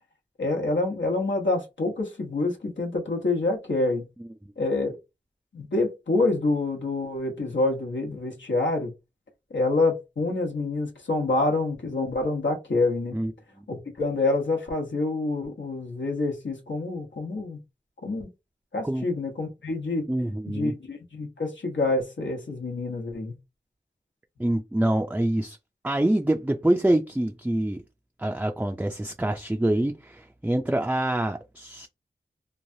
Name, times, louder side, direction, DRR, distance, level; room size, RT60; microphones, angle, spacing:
voice 1, 0.4-4.1 4.6-5.0 5.5-8.9 9.5-13.2 13.7-17.6 18.0-18.3 18.7-20.1 20.5-23.4, left 2 dB, 85° left, 1.0 m, -27 dB
voice 2, 20.1-20.8 24.4-25.6 25.8-27.8 28.2-31.9, right 1 dB, 10° right, 0.4 m, -25 dB
3.1 x 2.3 x 2.6 m
wide cardioid pair, 40°, 19 cm